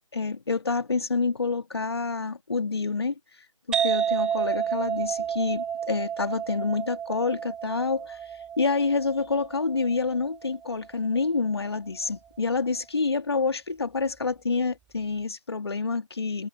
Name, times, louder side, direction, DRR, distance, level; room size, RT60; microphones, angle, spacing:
voice 1, 0.1-3.2 3.7-8.2 8.6-16.5, left 4 dB, 50° left, 2.1 m, -27 dB
sound 1, 3.7-11.2, right 8 dB, 5° right, 1.4 m, -31 dB
figure-of-eight pair, 160°, 17 cm